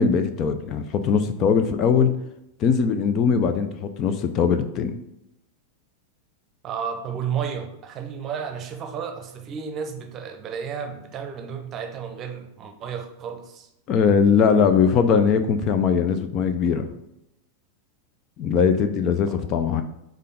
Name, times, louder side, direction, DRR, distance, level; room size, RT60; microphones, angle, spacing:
voice 1, 0.0-2.1 2.6-4.9 13.9-16.9 18.4-19.8, left 6 dB, 35° left, 8 dB, 0.5 m, -20 dB
voice 2, 6.6-13.7 19.2-19.4, right 7 dB, 30° right, 6 dB, 0.8 m, -32 dB
5.6 x 3.7 x 5.0 m, 0.84 s
figure-of-eight pair, 90°, 0 cm